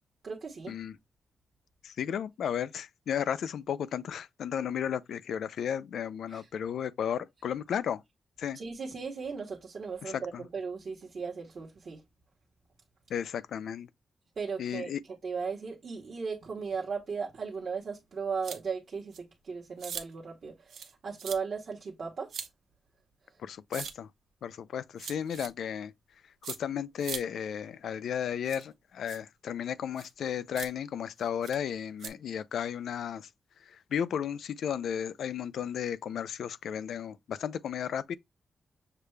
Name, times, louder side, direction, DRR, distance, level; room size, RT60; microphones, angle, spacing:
voice 1, 0.2-0.7 6.3-6.4 8.5-12.0 14.4-14.9 15.2-20.7 21.0-22.4, right 5 dB, 50° right, 1.0 m, -36 dB
voice 2, 1.8-8.0 8.4-8.6 10.0-10.5 13.1-13.9 14.6-15.0 23.4-24.1 24.4-25.9 26.4-33.3 33.6-38.2, left 8 dB, 85° left, 0.3 m, -34 dB
sound 1, 18.4-18.6 19.1-19.2 19.8-20.0 20.7-20.9 21.2-21.4 22.3-22.5 23.7-23.9 25.0-25.5 26.4-26.6 27.0-27.2 28.5-28.6 29.1-29.2 30.0-30.1 30.6-30.7 31.4-31.6 32.0-32.1, right 7 dB, 85° right, 0.7 m, -40 dB
6.7 x 2.2 x 3.1 m
wide cardioid pair, 165°, 0 cm